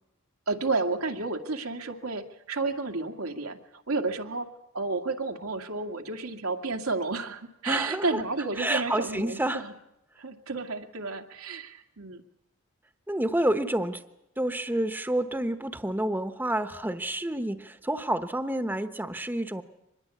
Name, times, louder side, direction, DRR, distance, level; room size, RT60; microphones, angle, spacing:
voice 1, 0.5-4.5 4.7-9.7 10.2-12.2, right 3 dB, 90° right, 4 dB, 2.2 m, -31 dB
voice 2, 7.7-8.1 8.6-9.6 13.1-14.0 14.4-19.6, right 1 dB, 10° right, 9 dB, 1.0 m, -29 dB
24.5 x 21.0 x 8.5 m, 0.85 s
head